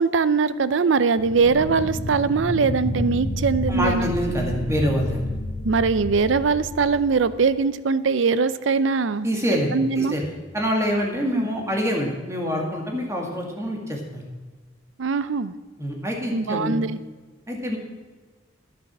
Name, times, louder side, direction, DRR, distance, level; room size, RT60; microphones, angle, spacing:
voice 1, 0.0-4.1 5.6-10.2 11.3-11.5 15.0-15.5 16.3-17.0, right 4 dB, 75° right, 15 dB, 0.5 m, -22 dB
sound 1, 1.2-7.6, left 1 dB, 80° left, 1.3 m, -30 dB
voice 2, 3.7-5.3 9.2-10.2 10.5-14.2 15.8-16.7 17.5-17.8, equal, 15° right, 0 dB, 1.9 m, -26 dB
10.5 x 10.0 x 6.1 m, 1.3 s
head